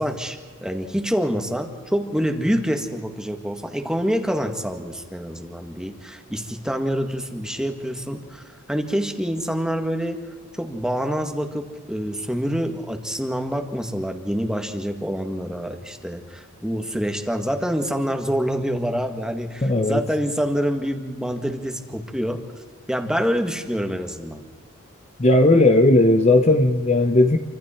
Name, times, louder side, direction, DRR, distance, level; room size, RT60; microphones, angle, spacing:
voice 1, 0.0-10.2 10.6-22.4 22.9-24.4, equal, 5° right, 5 dB, 1.8 m, -26 dB
voice 2, 19.6-20.0 25.2-27.4, left 2 dB, 30° left, 6 dB, 0.9 m, -16 dB
28.0 x 25.5 x 4.5 m, 1.5 s
head